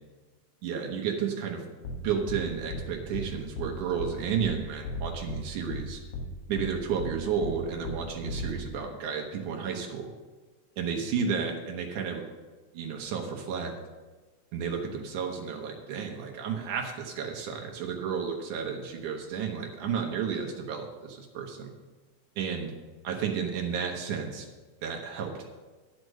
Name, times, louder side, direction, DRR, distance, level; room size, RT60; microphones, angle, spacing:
voice 1, 0.6-1.6 2.0-6.0 6.5-10.1 10.8-12.2 12.7-13.7 14.5-21.7 22.4-22.7 23.0-24.5 24.8-25.5, right 6 dB, 80° right, 2 dB, 2.4 m, -32 dB
sound 1, 1.8-2.0 2.3-2.4 2.7-2.8 3.1-3.3 3.6-3.7 4.0-4.1 4.4-4.5 4.8-5.4 5.7-5.8 6.1-6.3 6.6-6.7 7.0-7.1 7.4-7.5 7.8-8.0 8.3-8.5, left 1 dB, 60° left, 1.9 m, -35 dB
10.0 x 6.4 x 6.5 m, 1.3 s
omnidirectional pair, 3.6 m